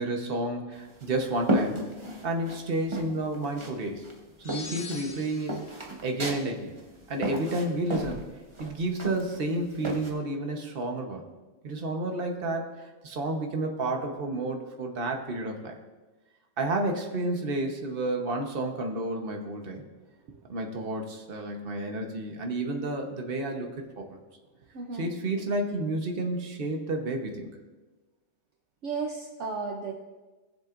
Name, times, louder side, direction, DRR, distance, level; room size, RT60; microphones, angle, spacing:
voice 1, 0.0-1.8 2.2-4.0 4.4-5.6 6.0-6.7 7.1-8.3 8.6-11.2 11.6-12.7 13.0-15.8 16.6-19.8 20.5-24.2 24.9-27.5, right 2 dB, 45° right, 3 dB, 1.3 m, -31 dB
sound 1, 0.7-2.6 2.9-3.8 4.0-10.1, right 1 dB, 25° right, 1.1 m, -33 dB
sound 2, 4.4-5.8, left 4 dB, 80° left, 1.3 m, -42 dB
voice 2, 24.7-25.1 28.8-29.9, right 4 dB, 65° right, 1 dB, 1.1 m, -33 dB
18.5 x 7.4 x 2.6 m, 1.2 s
omnidirectional pair, 1.4 m